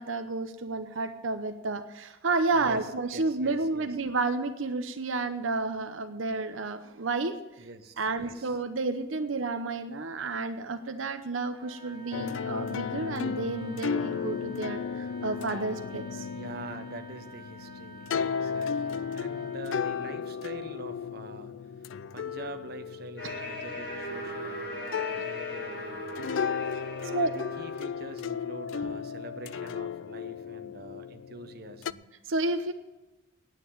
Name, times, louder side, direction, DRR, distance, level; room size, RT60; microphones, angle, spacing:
voice 1, 0.0-7.7 8.0-16.3 25.2-25.3 27.1-27.3 28.8-28.9 32.3-32.7, right 3 dB, 80° right, 8 dB, 0.8 m, -31 dB
voice 2, 2.6-4.0 7.6-8.6 16.3-21.9 22.1-26.3 27.0-32.1, right 3 dB, 50° right, 7 dB, 1.0 m, -45 dB
Trumpet, 11.5-19.7, right 1 dB, 20° right, 2.3 m, -49 dB
sound 1, 12.1-24.4 24.9-31.9, left 6 dB, 75° left, 0.4 m, -35 dB
sound 2, 23.2-28.0, left 1 dB, 50° left, 3.8 m, -38 dB
9.2 x 9.1 x 9.0 m, 1.1 s
head